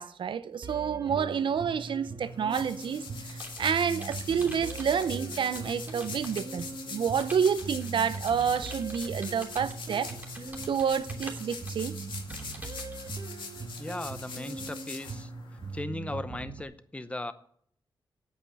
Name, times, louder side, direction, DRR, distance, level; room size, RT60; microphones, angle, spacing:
voice 1, 0.0-10.1 10.7-12.0, right 7 dB, 85° right, 0.8 m, -29 dB
sound 1, 0.6-16.6, right 3 dB, 45° right, 1.2 m, -41 dB
sound 2, 2.2-15.8, left 5 dB, 80° left, 2.5 m, -43 dB
Computer keyboard, 2.8-6.6 7.2-13.0, right 1 dB, 15° right, 2.9 m, -47 dB
voice 2, 13.8-15.3 15.7-17.3, left 2 dB, 15° left, 0.8 m, -37 dB
8.9 x 8.8 x 8.3 m
wide cardioid pair, 155°, 8 cm